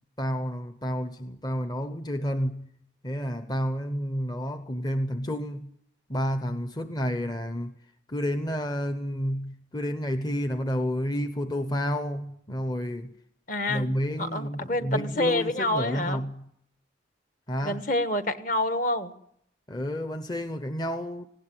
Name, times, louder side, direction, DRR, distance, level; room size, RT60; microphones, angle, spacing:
voice 1, 0.2-2.7 3.0-5.7 6.1-7.8 8.1-13.1 13.7-16.5 17.5-17.8 19.7-21.3, equal, 20° left, 0.8 m, -30 dB
voice 2, 13.5-13.9 14.2-16.2 17.6-19.1, left 1 dB, 45° left, 1.4 m, -27 dB
19.5 x 17.0 x 9.9 m
head